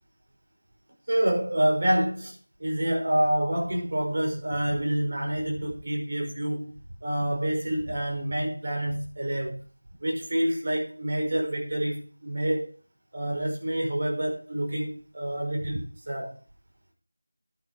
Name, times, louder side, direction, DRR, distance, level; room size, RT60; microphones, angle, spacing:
voice 1, 1.1-6.7 7.0-9.6 10.0-12.7 13.1-16.4, right 1 dB, 45° right, 6.0 m, -27 dB
12.0 x 9.6 x 5.0 m
figure-of-eight pair, 170°, 0 cm